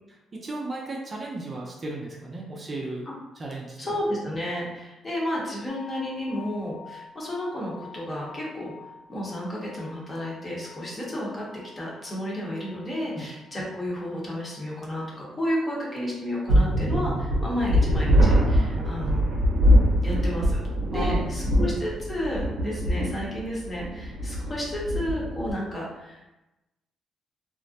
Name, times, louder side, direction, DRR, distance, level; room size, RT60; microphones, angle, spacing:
voice 1, 0.3-3.1 3.4-3.8 13.1-13.4 18.7-19.0 20.9-21.7, right 2 dB, 35° right, -2 dB, 0.4 m, -35 dB
voice 2, 3.8-8.7 9.1-11.4 11.8-19.4 20.0-20.6 20.9-26.2, left 1 dB, 30° left, -4 dB, 0.8 m, -32 dB
sound 1, 5.7-19.7, left 6 dB, 75° left, 0.6 m, -50 dB
sound 2, 16.5-25.5, equal, 85° right, 0.6 m, -23 dB
2.4 x 2.0 x 2.6 m, 1.0 s
cardioid pair, 90°, 0 cm